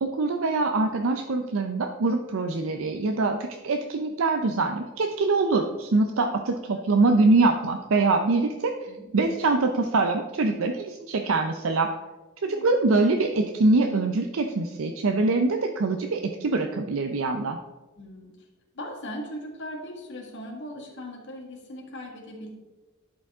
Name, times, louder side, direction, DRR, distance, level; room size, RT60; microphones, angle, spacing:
voice 1, 0.0-8.7 9.1-11.9 12.4-17.6, right 3 dB, 70° right, 4 dB, 0.5 m, -24 dB
voice 2, 18.0-18.4 18.7-22.5, equal, 60° left, 0 dB, 1.7 m, -39 dB
11.0 x 5.1 x 3.5 m, 1.1 s
head